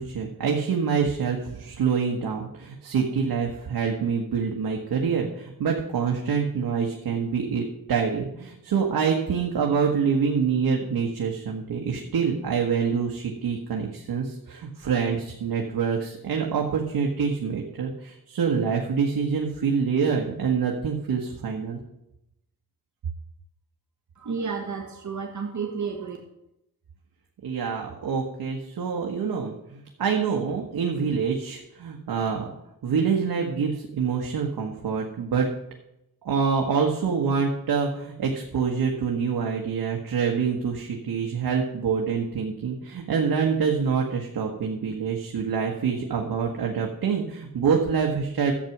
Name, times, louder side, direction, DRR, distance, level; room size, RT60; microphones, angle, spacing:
voice 1, 0.0-7.6 7.9-21.8 27.4-32.5 32.8-35.5 36.2-48.5, right 6 dB, 85° right, 0 dB, 1.5 m, -26 dB
voice 2, 24.1-26.2, right 5 dB, 50° right, 2 dB, 1.7 m, -31 dB
11.5 x 8.4 x 6.0 m, 0.84 s
wide cardioid pair, 100°, 36 cm